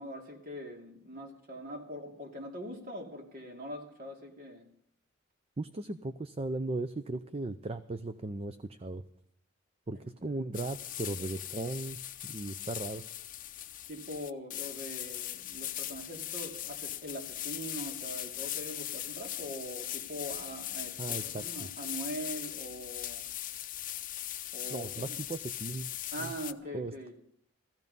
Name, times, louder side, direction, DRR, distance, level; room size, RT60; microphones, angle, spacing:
voice 1, 0.0-4.7 13.9-23.2 24.5-25.2 26.1-27.2, equal, 45° right, 1 dB, 2.6 m, -42 dB
voice 2, 5.6-9.0 9.9-13.0 21.0-21.7 24.7-25.9 26.2-26.3 26.7-26.9, right 2 dB, 30° right, 11 dB, 0.5 m, -37 dB
sound 1, 10.5-26.5, left 13 dB, 45° left, 0.6 m, -40 dB
16.0 x 15.0 x 5.4 m, 0.66 s
head